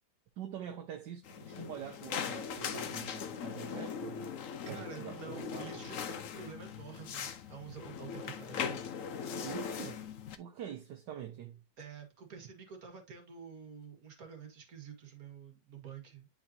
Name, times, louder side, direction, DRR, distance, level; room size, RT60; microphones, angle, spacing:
voice 1, 0.4-4.2 4.7-5.8 9.4-10.0 10.4-11.6, right 10 dB, 65° right, 1.4 m, -45 dB
sound 1, 1.2-10.4, left 7 dB, 60° left, 0.9 m, -40 dB
voice 2, 4.7-8.8 11.8-16.3, right 6 dB, 50° right, 2.1 m, -49 dB
10.0 x 4.0 x 2.7 m
omnidirectional pair, 2.1 m